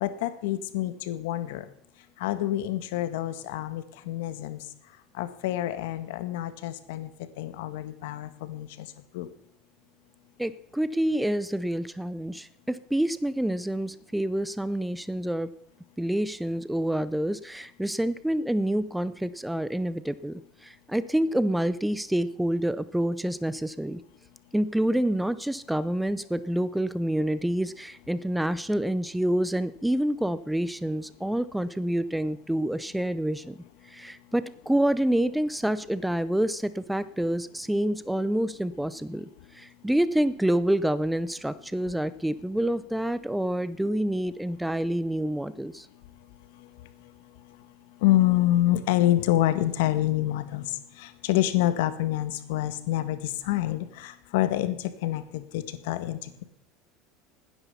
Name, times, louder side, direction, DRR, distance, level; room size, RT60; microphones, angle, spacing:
voice 1, 0.0-1.6 2.2-4.6 5.2-7.1 7.4-8.9 9.1-9.3 48.0-50.6 51.0-54.8 55.0-56.4, left 14 dB, 85° left, 10 dB, 1.6 m, -27 dB
voice 2, 10.4-15.5 16.0-24.0 24.5-33.6 33.8-45.9, right 1 dB, 5° right, 16 dB, 0.6 m, -27 dB
15.0 x 10.0 x 7.1 m, 0.69 s
supercardioid pair, 125°, 0 cm